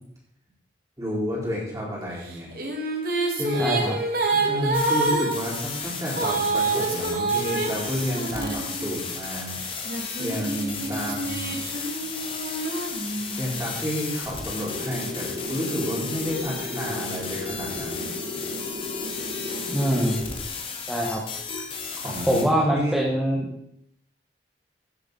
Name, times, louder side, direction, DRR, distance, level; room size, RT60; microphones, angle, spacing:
voice 1, 1.0-2.5 3.4-3.8 4.3-9.6 9.9-11.6 13.4-18.1 20.0-20.1 22.0-23.0, equal, 20° right, -5 dB, 4.4 m, -30 dB
sound 1, 2.2-9.2 9.9-13.6, right 3 dB, 55° right, 2.1 m, -28 dB
voice 2, 3.5-3.9 19.7-20.2 20.9-21.2 22.3-23.5, equal, 5° right, -4 dB, 1.4 m, -24 dB
sound 2, 4.7-22.4, left 5 dB, 30° left, 1.7 m, -34 dB
sound 3, 14.7-20.3, left 1 dB, 70° right, 4.4 m, -35 dB
16.5 x 7.9 x 4.1 m, 0.74 s
head